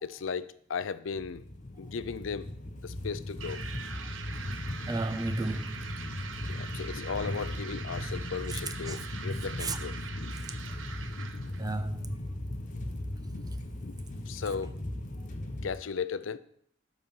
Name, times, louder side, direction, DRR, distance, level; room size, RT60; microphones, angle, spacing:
voice 1, 0.0-1.4 1.8-2.5 2.8-3.6 6.5-10.4 11.2-11.6 12.9-13.0 13.3-13.9 14.3-14.8 15.6-16.4, left 5 dB, 85° left, 0.5 m, -37 dB
sound 1, 1.1-15.7, left 1 dB, 40° left, 0.9 m, -38 dB
sound 2, 3.4-11.7, right 6 dB, 85° right, 0.9 m, -44 dB
voice 2, 4.9-5.8 8.5-8.6 8.9-9.0 9.6-9.8 11.6-12.1, right 2 dB, 20° right, 0.6 m, -33 dB
11.0 x 4.1 x 7.0 m
head